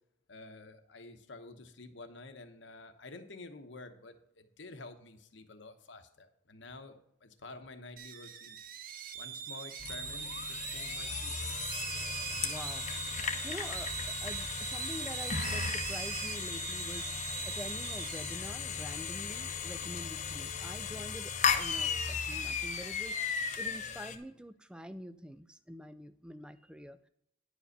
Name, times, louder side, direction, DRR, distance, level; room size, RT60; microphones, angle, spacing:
voice 1, 0.3-8.6 9.1-11.5, left 3 dB, 70° left, 8 dB, 1.0 m, -50 dB
sound 1, 8.0-20.2, right 7 dB, 45° right, 0.6 m, -41 dB
sound 2, 9.8-24.2, left 6 dB, 35° left, 0.8 m, -36 dB
voice 2, 12.3-12.9 13.4-17.1 17.4-23.2 23.6-27.1, equal, 5° right, 12 dB, 0.4 m, -46 dB
10.5 x 5.1 x 6.6 m, 0.74 s
head